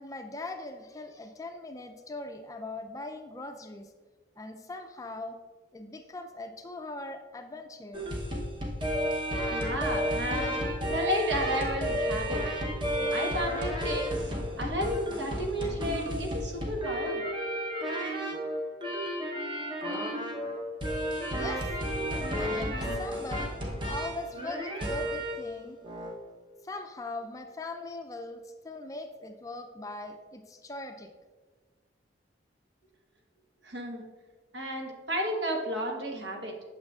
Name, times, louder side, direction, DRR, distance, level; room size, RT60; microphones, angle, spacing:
voice 1, 0.0-3.9 4.4-5.4 5.7-8.1 8.8-8.9 21.3-21.7 22.3-25.8 26.6-31.1, left 2 dB, 20° left, 5 dB, 0.4 m, -40 dB
sound 1, 7.9-25.5 25.8-26.1, equal, 25° right, 0.8 m, -32 dB
voice 2, 9.5-12.4 13.0-17.2 33.6-34.0 34.5-36.5, equal, 75° right, 1 dB, 1.2 m, -32 dB
8.8 x 6.3 x 2.4 m, 1.3 s
head